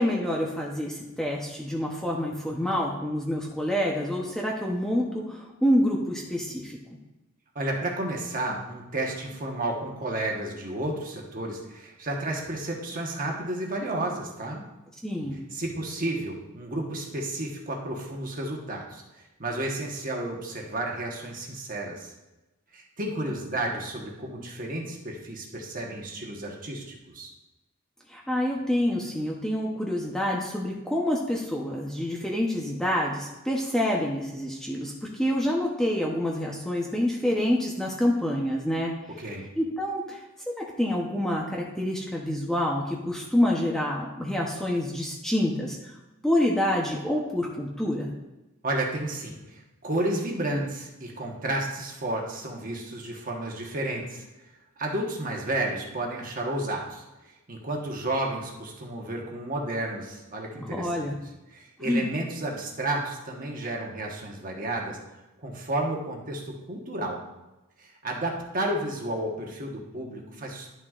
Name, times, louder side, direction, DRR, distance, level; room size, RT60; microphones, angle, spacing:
voice 1, 0.0-6.8 15.0-15.4 28.1-38.9 39.6-40.2 40.5-45.8 46.2-48.1 60.6-61.2 61.8-62.1, left 1 dB, ahead, -2 dB, 0.7 m, -27 dB
voice 2, 7.5-14.6 15.5-22.1 22.7-27.3 39.2-39.5 48.6-54.2 54.8-57.0 57.5-61.2 61.5-65.0 65.4-67.2 67.8-70.7, right 1 dB, 40° right, 0 dB, 1.2 m, -32 dB
11.0 x 6.2 x 2.4 m, 1.0 s
head